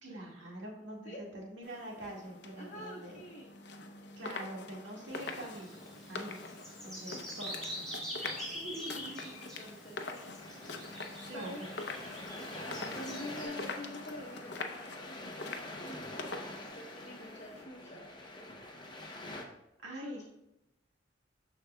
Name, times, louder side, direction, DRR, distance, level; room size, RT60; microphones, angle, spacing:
voice 1, 0.0-3.2 4.2-5.8 6.1-6.4 6.8-7.8 8.6-9.2 10.8-11.8 19.8-20.2, right 1 dB, 80° right, -2 dB, 1.9 m, -45 dB
sound 1, 1.6-17.6, left 3 dB, 65° left, 0.7 m, -45 dB
voice 2, 2.5-3.5 8.4-8.9 9.2-10.4 10.9-11.6 12.0-18.1 19.9-20.2, left 1 dB, 40° left, -3 dB, 1.0 m, -47 dB
Bird vocalization bird call bird song, 5.1-13.4, equal, ahead, 2.6 m, -45 dB
sound 2, 10.4-19.4, left 1 dB, 25° left, 0.8 m, -46 dB
13.5 x 4.9 x 2.3 m, 0.90 s
head